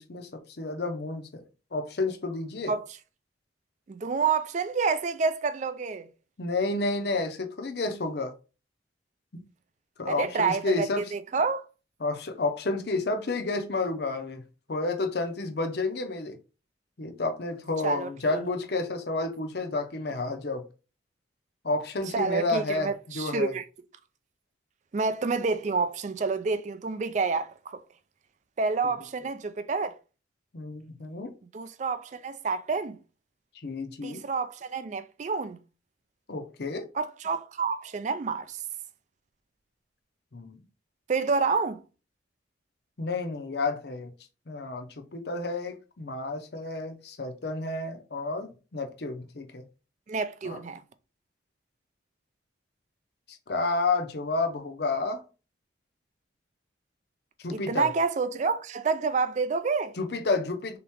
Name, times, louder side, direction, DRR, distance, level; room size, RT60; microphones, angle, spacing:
voice 1, 0.0-1.4 1.7-2.7 6.4-8.3 9.3-9.4 10.0-11.0 12.0-14.4 14.7-16.4 17.0-20.7 21.6-22.9 23.1-23.5 30.5-31.3 33.6-34.2 36.3-36.9 40.3-40.6 43.0-44.1 44.5-49.6 50.4-50.6 53.3-55.2 57.4-57.9 60.0-60.8, left 3 dB, 55° left, 0.6 m, -30 dB
voice 2, 3.9-6.1 10.1-11.7 17.8-18.1 22.1-23.6 24.9-27.8 28.6-30.0 31.5-33.0 34.0-35.6 36.9-38.6 41.1-41.8 50.1-50.8 57.5-59.9, right 4 dB, 40° right, 0.3 m, -28 dB
3.5 x 2.9 x 3.5 m
head